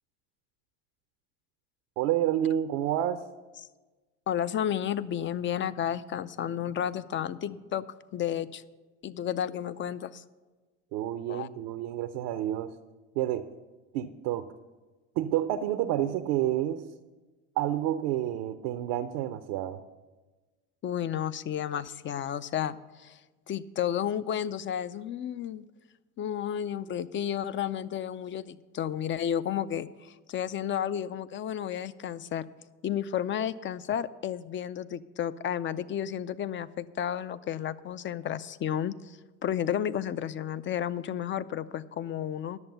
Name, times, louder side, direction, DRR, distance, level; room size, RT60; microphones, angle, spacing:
voice 1, 2.0-3.2 10.9-12.7 13.2-13.4 13.9-14.5 15.2-16.8 17.6-19.8, right 12 dB, 70° right, 9 dB, 0.6 m, -29 dB
voice 2, 4.3-7.9 8.1-8.6 9.0-10.2 11.3-11.5 20.8-23.2 23.5-25.6 26.2-32.5 32.8-42.6, left 9 dB, 35° left, 16 dB, 0.5 m, -32 dB
11.0 x 7.0 x 6.8 m, 1.3 s
hypercardioid pair, 75°, 35 cm